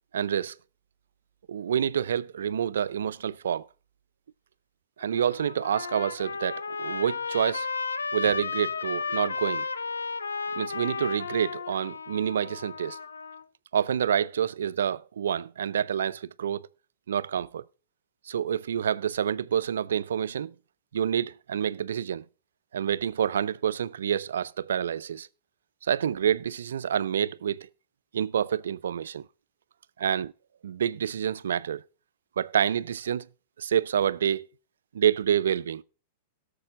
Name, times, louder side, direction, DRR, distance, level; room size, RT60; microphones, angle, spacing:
voice 1, 0.1-0.6 1.5-3.7 5.0-7.7 8.1-9.7 10.6-13.0 13.7-16.7 17.1-17.6 18.3-20.6 20.9-22.3 22.7-25.3 25.8-27.7 28.1-29.3 30.0-30.3 30.6-31.8 32.4-33.3 33.6-34.5 34.9-35.8, right 9 dB, 75° right, 0.4 m, -28 dB
Trumpet, 5.0-13.4, left 4 dB, 85° left, 0.6 m, -33 dB
17.0 x 6.8 x 3.7 m
hypercardioid pair, 105°, 0 cm